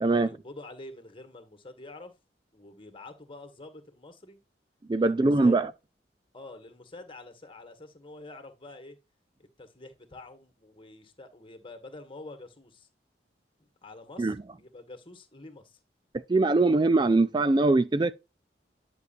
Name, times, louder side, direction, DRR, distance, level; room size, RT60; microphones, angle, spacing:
voice 1, 0.1-2.1 2.5-4.4 5.0-5.6 6.3-9.0 9.4-12.9 13.8-15.8, left 2 dB, 30° left, 1.8 m, -47 dB
voice 2, 4.9-5.7 14.2-14.4 16.1-18.1, right 2 dB, 25° right, 0.4 m, -22 dB
10.5 x 6.4 x 2.6 m
head